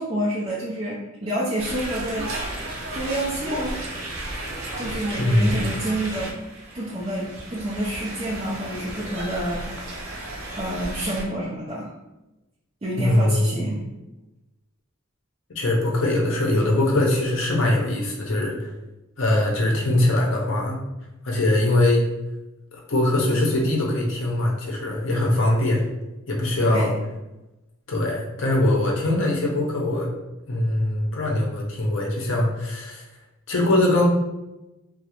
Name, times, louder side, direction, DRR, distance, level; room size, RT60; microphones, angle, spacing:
voice 1, 0.0-2.3 2.9-3.8 4.8-6.3 6.7-10.0 10.6-11.9 12.8-13.9 26.7-27.0, right 1 dB, 25° right, -8 dB, 0.4 m, -28 dB
sound 1, 1.6-11.3, right 1 dB, 85° right, 0.5 m, -33 dB
voice 2, 5.2-5.7 13.0-13.6 15.5-18.7 19.2-20.8 21.2-22.0 22.7-25.8 26.3-26.9 27.9-30.1 30.5-33.0 33.5-34.1, left 1 dB, 65° left, -2 dB, 0.6 m, -22 dB
2.4 x 2.0 x 2.8 m, 0.98 s
head